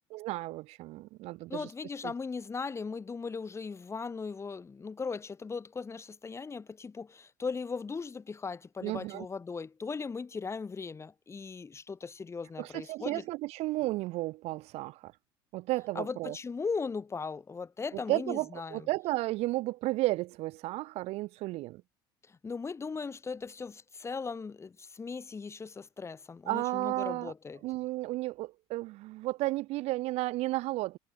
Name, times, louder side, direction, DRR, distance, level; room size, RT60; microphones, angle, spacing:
voice 1, 0.1-1.7 2.0-2.1 8.8-9.2 12.6-15.1 15.5-16.4 18.1-21.8 26.5-27.3 27.6-31.0, right 19 dB, 65° right, 2.7 m, -33 dB
voice 2, 1.5-13.2 15.9-18.9 22.3-27.6, left 5 dB, 25° left, 5.9 m, -38 dB
supercardioid pair, 100°, 12 cm